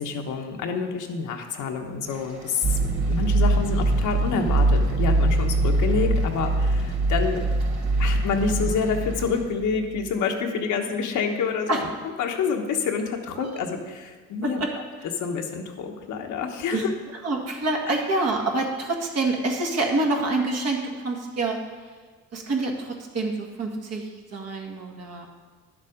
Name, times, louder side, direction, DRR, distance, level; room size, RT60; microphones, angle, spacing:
voice 1, 0.0-2.8 3.1-7.5 8.0-11.9 12.2-14.8 15.2-16.9 17.8-17.9, left 5 dB, 80° left, 3 dB, 1.2 m, -27 dB
sound 1, 2.0-9.4, right 2 dB, 75° right, 3.0 m, -46 dB
sound 2, 2.6-9.7, right 2 dB, 35° right, 0.6 m, -23 dB
voice 2, 17.2-21.6 22.3-25.3, right 2 dB, 55° right, 1 dB, 1.9 m, -27 dB
10.5 x 7.4 x 5.1 m, 1.4 s
cardioid pair, 90°, 30 cm